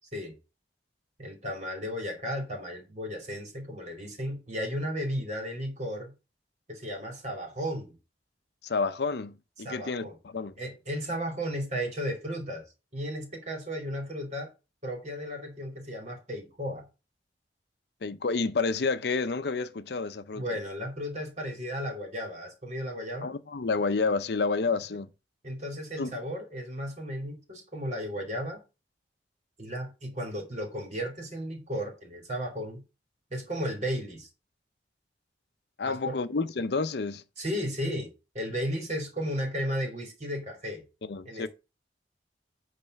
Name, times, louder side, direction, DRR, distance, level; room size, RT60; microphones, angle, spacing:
voice 1, 1.2-6.1 6.7-8.0 9.6-10.2 10.6-12.6 12.9-14.5 14.8-16.8 20.3-23.3 25.4-28.6 29.6-32.8 33.3-34.3 35.8-36.2 37.4-40.8 41.2-41.5, equal, 40° right, 2.6 m, -34 dB
voice 2, 8.6-10.5 18.0-20.4 23.2-25.1 26.0-26.1 35.8-37.2 41.1-41.5, left 4 dB, 65° left, 0.6 m, -29 dB
8.9 x 3.3 x 6.4 m
head